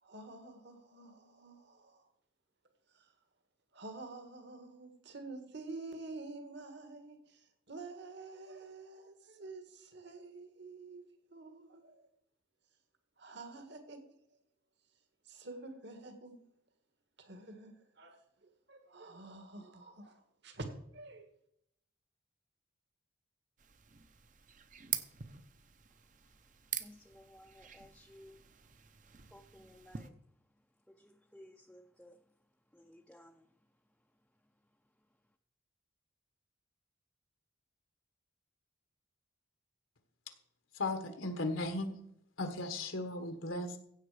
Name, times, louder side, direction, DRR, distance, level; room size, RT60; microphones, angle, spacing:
voice 1, 0.0-2.1 2.9-3.1 3.7-11.0 11.3-12.1 13.2-14.0 15.2-16.4 17.2-20.7 20.9-21.3, right 3 dB, 60° right, 1.7 m, -49 dB
sound 1, 23.6-30.1, right 10 dB, 40° right, 0.8 m, -45 dB
voice 2, 26.7-28.5 29.3-30.2 30.9-32.2 32.7-33.5, left 1 dB, 5° left, 0.5 m, -58 dB
voice 3, 40.7-42.0 42.4-43.8, left 2 dB, 80° left, 1.4 m, -36 dB
15.5 x 7.8 x 5.0 m
head